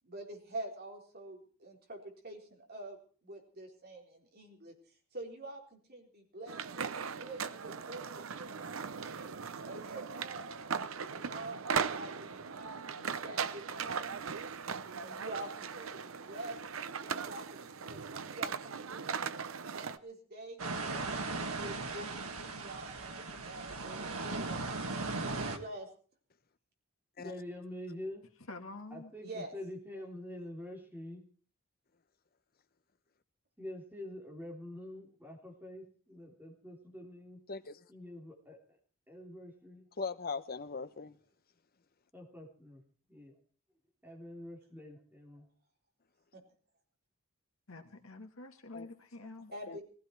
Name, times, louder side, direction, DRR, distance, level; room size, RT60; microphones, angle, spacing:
voice 1, 0.0-10.5 11.1-14.2 15.0-16.6 16.9-19.2 19.8-24.6 25.3-25.9 29.2-29.5 46.3-46.4 49.2-49.8, right 1 dB, 45° right, 3.9 m, -47 dB
sound 1, 6.5-20.0, right 6 dB, 65° right, 0.7 m, -39 dB
sound 2, 20.6-25.6, right 3 dB, 90° right, 1.8 m, -37 dB
voice 2, 27.2-28.2 28.9-31.2 33.6-37.4 37.9-38.6 39.1-39.8 42.1-42.8 43.1-43.3 44.0-45.5, left 1 dB, 10° right, 3.7 m, -46 dB
voice 3, 28.5-29.1 47.7-49.5, left 2 dB, 70° left, 2.0 m, -47 dB
voice 4, 37.5-37.9 40.0-41.2 48.7-48.9 49.7-49.8, left 4 dB, 45° left, 0.9 m, -40 dB
19.5 x 15.5 x 4.6 m
head